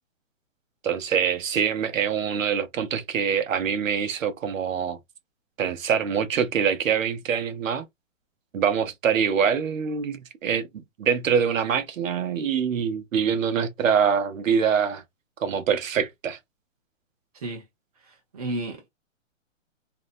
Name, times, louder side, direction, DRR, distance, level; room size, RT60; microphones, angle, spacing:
voice 1, 0.8-5.0 5.6-7.9 8.5-10.7 11.0-15.0 15.4-16.4, right 7 dB, 80° right, 0.8 m, -24 dB
voice 2, 17.3-17.6 18.0-18.9, right 1 dB, 30° right, 0.7 m, -33 dB
2.7 x 2.1 x 2.5 m
hypercardioid pair, 175°, 39 cm